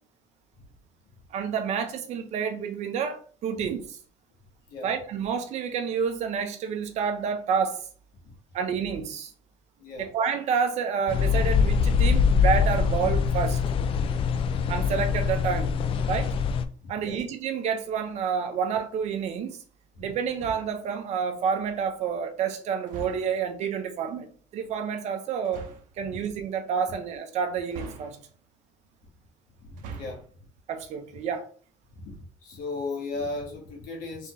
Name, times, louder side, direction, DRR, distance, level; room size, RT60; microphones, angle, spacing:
voice 1, 1.3-4.0 4.8-7.8 8.5-9.3 10.0-13.6 14.7-15.8 16.1-16.3 16.9-19.6 20.0-25.7 26.0-28.2 30.7-31.5, right 6 dB, 60° right, 0.9 m, -29 dB
voice 2, 9.8-10.1 14.3-14.5 16.9-17.2 20.0-20.1 26.0-26.2 29.6-30.2 31.9-34.3, left 3 dB, 90° left, 1.8 m, -36 dB
sound 1, 11.1-16.6, left 6 dB, 45° left, 0.4 m, -23 dB
sound 2, 20.3-20.9 22.9-23.5 25.4-26.0 27.7-28.5 29.7-30.4, right 6 dB, 90° right, 0.8 m, -42 dB
4.3 x 3.6 x 3.2 m
cardioid pair, 145°, 13 cm